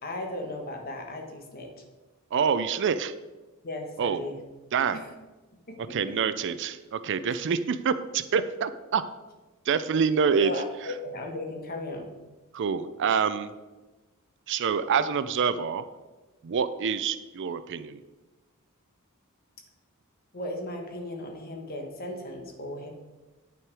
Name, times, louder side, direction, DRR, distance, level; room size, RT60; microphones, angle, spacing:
voice 1, 0.0-1.7 3.6-4.4 4.9-5.0 5.7-6.0 10.4-12.1 20.3-22.9, left 1 dB, 45° left, 3 dB, 1.4 m, -36 dB
voice 2, 2.3-3.1 4.0-4.2 4.7-5.0 5.9-9.0 9.6-10.6 12.5-13.5 14.5-15.8 16.4-18.0, right 6 dB, 55° right, 13 dB, 0.4 m, -26 dB
9.2 x 5.9 x 4.7 m, 1.2 s
head